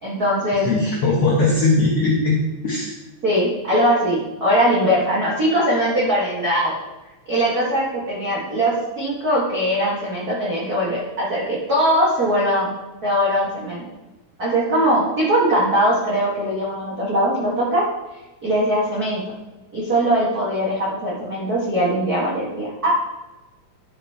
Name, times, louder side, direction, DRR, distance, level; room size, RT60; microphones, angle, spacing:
voice 1, 0.0-0.7 3.2-6.7 7.3-12.7 13.0-13.8 14.4-17.8 18.4-19.2 19.7-22.9, equal, 45° right, -6 dB, 1.3 m, -21 dB
voice 2, 0.5-2.9, left 3 dB, 60° left, -3 dB, 1.6 m, -19 dB
12.0 x 5.5 x 4.5 m, 1.1 s
omnidirectional pair, 4.5 m